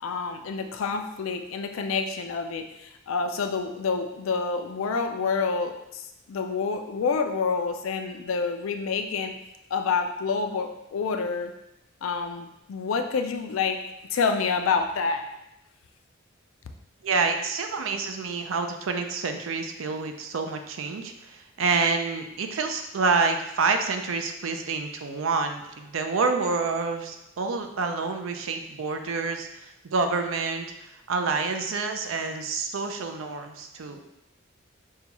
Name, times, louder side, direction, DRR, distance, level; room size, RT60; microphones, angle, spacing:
voice 1, 0.0-9.3 9.7-11.5 12.0-13.8 14.1-15.2, left 5 dB, 90° left, 6 dB, 0.4 m, -28 dB
voice 2, 17.0-34.0, right 4 dB, 80° right, 6 dB, 0.5 m, -28 dB
5.5 x 2.3 x 2.9 m, 0.86 s
head